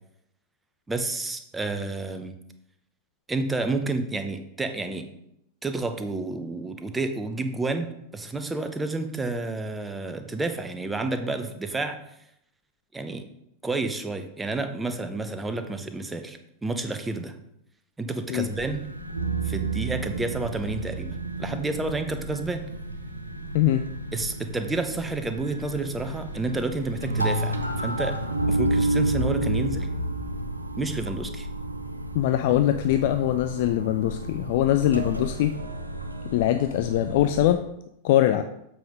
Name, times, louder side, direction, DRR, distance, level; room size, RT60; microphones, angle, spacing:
voice 1, 0.9-2.3 3.3-5.0 5.6-12.0 12.9-13.2 13.6-17.3 18.0-18.9 19.4-21.1 21.4-22.6 24.1-28.2 28.5-29.9 30.8-31.5, right 3 dB, 10° right, 6 dB, 0.9 m, -30 dB
sound 1, 18.5-37.5, right 1 dB, 85° right, 0.7 m, -31 dB
voice 2, 23.5-23.9 32.1-35.5 36.3-37.6 38.0-38.4, left 12 dB, 50° left, 9 dB, 0.4 m, -22 dB
7.5 x 5.5 x 5.1 m, 0.79 s
figure-of-eight pair, 90°, 0 cm